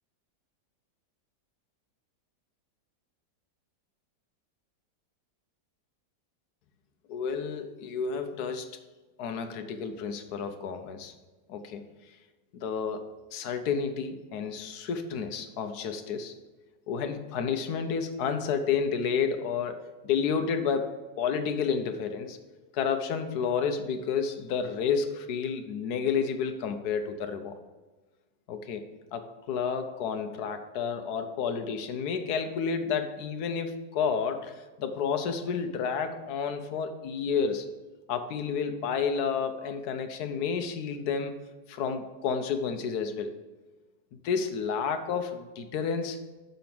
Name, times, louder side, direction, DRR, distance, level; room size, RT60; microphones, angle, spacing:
voice 1, 7.1-8.7 9.2-11.1 11.5-11.8 12.5-16.3 16.9-19.8 20.0-22.4 22.7-27.5 28.5-28.8 29.1-37.7 38.1-41.4 41.7-43.3 44.1-46.2, left 6 dB, 70° left, 8 dB, 1.2 m, -30 dB
6.8 x 5.1 x 5.9 m, 1.2 s
omnidirectional pair, 1.9 m